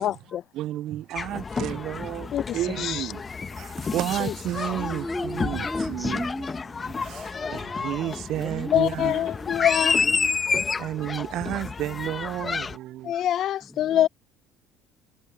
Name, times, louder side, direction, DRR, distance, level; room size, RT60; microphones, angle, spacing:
voice 1, 0.0-0.4 2.3-3.1 4.2-4.3 8.7-10.1 13.0-14.1, left 11 dB, 55° left, 0.6 m, -25 dB
voice 2, 0.5-6.5 6.7-9.3 10.8-13.3, right 13 dB, 65° right, 0.4 m, -32 dB
sound 1, 1.1-12.8, left 5 dB, 30° left, 1.2 m, -30 dB
voice 3, 4.7-7.0 8.3-9.5 9.8-10.8 13.7-14.0, left 1 dB, 10° left, 1.1 m, -37 dB
hypercardioid pair, 70°, 0 cm